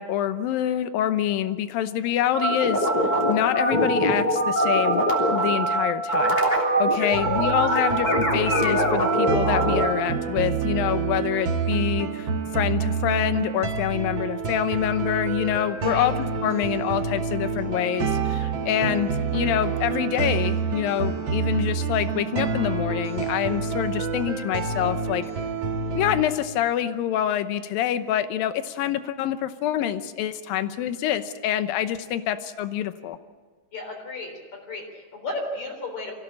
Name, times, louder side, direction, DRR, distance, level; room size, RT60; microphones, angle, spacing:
voice 1, 0.0-2.9 3.3-5.0 5.3-6.4 6.8-12.3 12.5-25.2 25.9-33.2, left 11 dB, 75° left, 11 dB, 2.5 m, -26 dB
sound 1, 2.3-9.9, right 1 dB, 10° left, 2.8 m, -22 dB
sound 2, 7.1-26.2, right 5 dB, 55° right, 2.0 m, -28 dB
voice 2, 33.7-34.3 34.7-34.8 35.1-36.1, left 2 dB, 45° left, 2 dB, 5.0 m, -33 dB
24.0 x 16.0 x 8.6 m, 1.5 s
omnidirectional pair, 4.5 m